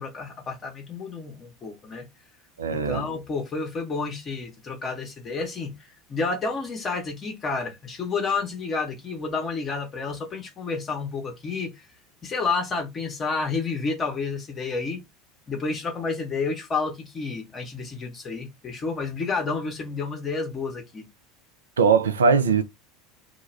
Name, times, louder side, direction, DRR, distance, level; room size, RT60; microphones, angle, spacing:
voice 1, 0.0-2.1 2.7-5.8 6.1-11.7 12.2-15.0 15.5-21.1, left 4 dB, 30° left, 0.8 m, -30 dB
voice 2, 2.6-3.1 21.8-22.6, right 5 dB, 75° right, 0.4 m, -20 dB
2.3 x 2.2 x 3.1 m
figure-of-eight pair, 75°, 0 cm